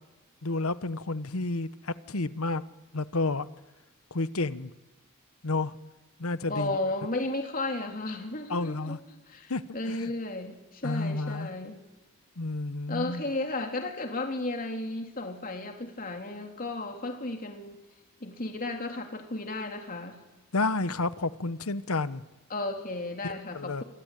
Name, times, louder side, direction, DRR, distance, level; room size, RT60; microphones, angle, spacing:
voice 1, 0.4-2.6 2.9-3.5 4.1-4.7 5.4-5.7 6.2-6.8 8.5-9.0 9.5-10.1 10.8-11.5 12.4-13.2 20.5-22.2 23.2-23.8, left 3 dB, 75° left, 14 dB, 1.1 m, -30 dB
voice 2, 6.5-9.0 9.3-11.8 12.9-17.8 18.2-20.2 22.5-23.8, left 2 dB, 40° left, 3 dB, 3.2 m, -34 dB
27.0 x 24.0 x 9.2 m, 1.1 s
head